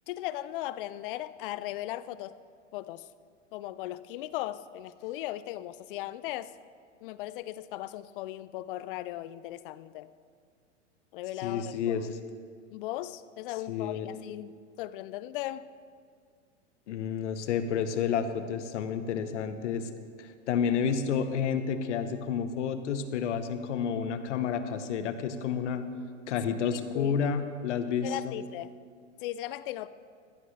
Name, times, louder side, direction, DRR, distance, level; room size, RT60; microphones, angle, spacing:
voice 1, 0.1-2.4 2.7-3.1 3.5-6.5 7.0-10.1 11.1-12.0 12.7-15.7 26.7-27.1 28.0-28.7 29.2-29.9, left 15 dB, 45° left, 17 dB, 0.4 m, -37 dB
voice 2, 11.4-12.2 13.7-14.1 16.9-19.9 20.2-25.9 26.3-28.3, left 7 dB, 70° left, 10 dB, 1.1 m, -30 dB
15.0 x 12.5 x 3.3 m, 2.1 s
hypercardioid pair, 115°, 37 cm